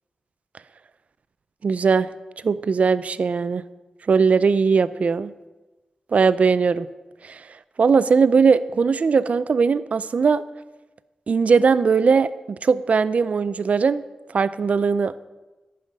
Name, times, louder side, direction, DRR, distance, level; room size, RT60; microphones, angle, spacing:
voice 1, 1.6-2.1 2.4-3.6 4.1-5.3 6.1-6.9 7.2-7.4 7.8-10.4 11.3-14.0 14.3-15.3, right 5 dB, 60° right, 15 dB, 0.5 m, -19 dB
11.5 x 5.6 x 8.8 m, 1.1 s
wide cardioid pair, 105°, 3 cm